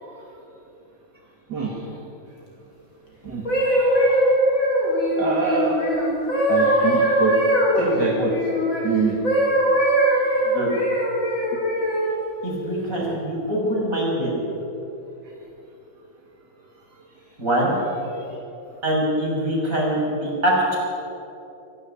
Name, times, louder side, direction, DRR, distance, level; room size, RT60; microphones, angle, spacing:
voice 1, 1.5-2.0 3.2-4.2 5.2-5.8 6.5-7.4 7.7-8.3 8.8-9.2 18.1-18.2, right 4 dB, 55° right, -1 dB, 3.0 m, -25 dB
sound 1, 3.3-8.8 9.2-12.1 12.8-13.0, equal, 75° left, 6.0 m, -21 dB
voice 2, 12.4-14.3 17.4-17.7 18.8-20.8, right 1 dB, 40° right, -3 dB, 6.8 m, -23 dB
23.5 x 15.5 x 8.7 m, 2.9 s
omnidirectional pair, 2.1 m